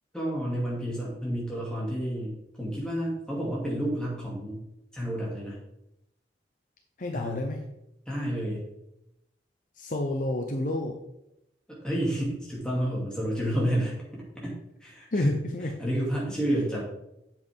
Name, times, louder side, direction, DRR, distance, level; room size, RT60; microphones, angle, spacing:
voice 1, 0.1-4.6 4.9-5.6 7.1-7.4 8.1-8.6 11.7-14.6 14.8-15.4 15.8-16.8, equal, 5° left, -5 dB, 2.6 m, -30 dB
voice 2, 7.0-7.6 9.8-10.9 15.1-15.7, left 1 dB, 45° left, 3 dB, 0.7 m, -29 dB
8.2 x 7.2 x 3.6 m, 0.84 s
head